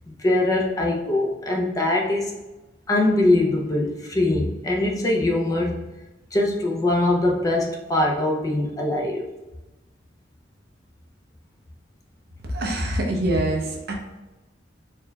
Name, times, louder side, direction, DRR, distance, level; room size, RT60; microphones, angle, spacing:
voice 1, 0.1-2.3 2.9-5.8 6.3-9.3, left 2 dB, 20° left, 0 dB, 0.4 m, -22 dB
voice 2, 12.5-13.9, right 1 dB, 60° right, 1 dB, 0.7 m, -24 dB
4.4 x 3.3 x 2.2 m, 1.1 s
head